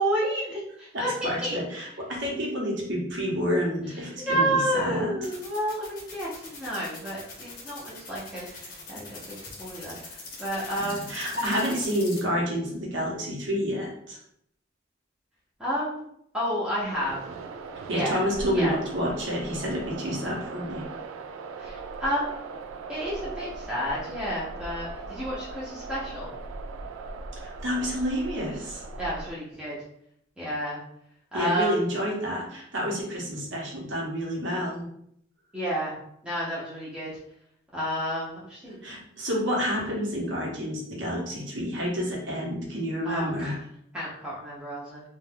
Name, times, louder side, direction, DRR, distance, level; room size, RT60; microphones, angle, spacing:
voice 1, 0.0-1.6 3.9-11.1 11.5-11.8 15.6-16.1 16.3-17.2 17.9-18.2 18.5-18.7 21.6-22.3 22.9-26.3 29.0-29.8 30.4-30.8 31.3-31.8 35.5-35.9 36.2-37.1 37.7-38.8 43.0-43.5 43.9-45.0, equal, 5° right, -9 dB, 0.6 m, -30 dB
voice 2, 0.9-5.1 10.8-14.2 17.9-20.8 27.4-28.8 31.3-34.8 38.8-43.6, equal, 65° right, -2 dB, 0.9 m, -29 dB
sound 1, 5.2-12.2, left 4 dB, 45° left, 0.7 m, -42 dB
sound 2, 16.9-29.3, right 4 dB, 90° right, 0.3 m, -39 dB
2.4 x 2.2 x 3.3 m, 0.71 s
head